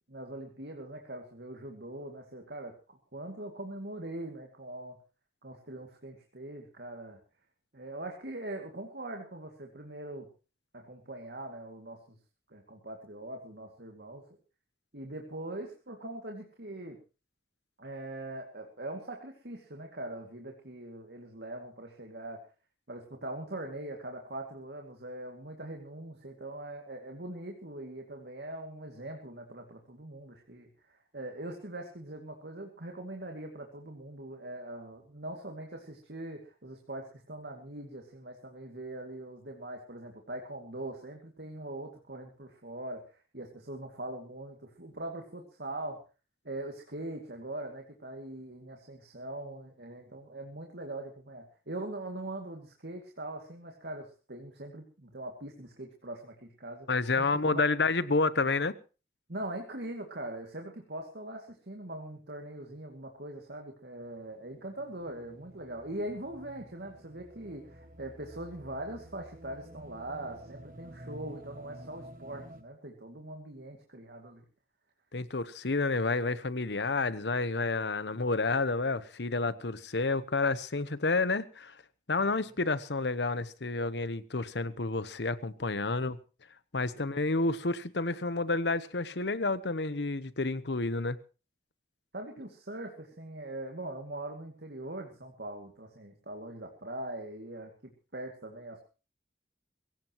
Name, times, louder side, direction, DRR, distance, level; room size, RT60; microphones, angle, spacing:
voice 1, 0.1-5.0 5.4-7.2 7.7-10.3 10.7-12.2 12.5-14.2 14.9-17.0 17.8-22.4 22.9-46.0 46.4-56.9 57.2-57.6 59.3-74.4 76.9-77.1 82.3-82.4 87.0-87.2 92.1-98.9, right 1 dB, 75° right, 2.4 m, -42 dB
voice 2, 56.9-58.8 75.1-81.8 82.1-86.2 86.7-91.2, left 3 dB, 85° left, 1.0 m, -30 dB
sound 1, 64.0-72.6, equal, 50° right, 1.5 m, -51 dB
23.0 x 16.5 x 3.1 m
head